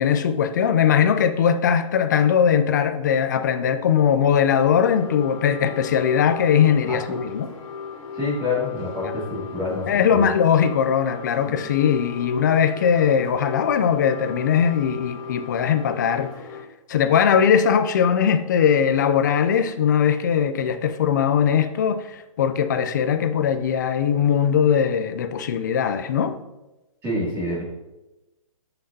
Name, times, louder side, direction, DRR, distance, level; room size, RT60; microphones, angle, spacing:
voice 1, 0.0-7.5 9.9-16.3 16.9-26.4, left 8 dB, 35° left, 0.4 m, -20 dB
sound 1, 4.7-16.6, left 6 dB, 75° left, 2.3 m, -37 dB
voice 2, 6.9-7.2 8.1-10.3 11.4-11.7 27.0-27.6, left 2 dB, 15° right, 2.5 m, -27 dB
9.6 x 5.8 x 2.8 m
hypercardioid pair, 165°, 18 cm